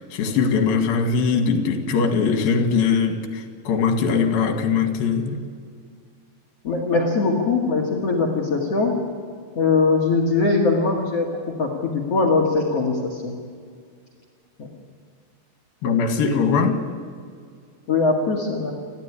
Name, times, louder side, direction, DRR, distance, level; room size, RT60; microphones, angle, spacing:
voice 1, 0.0-5.4 15.8-16.8, left 5 dB, 65° left, 5 dB, 3.7 m, -21 dB
voice 2, 6.6-9.0 9.6-11.3 11.6-13.3 17.9-18.7, left 3 dB, 45° left, -1 dB, 2.6 m, -21 dB
29.5 x 13.0 x 9.9 m, 2.1 s
omnidirectional pair, 4.7 m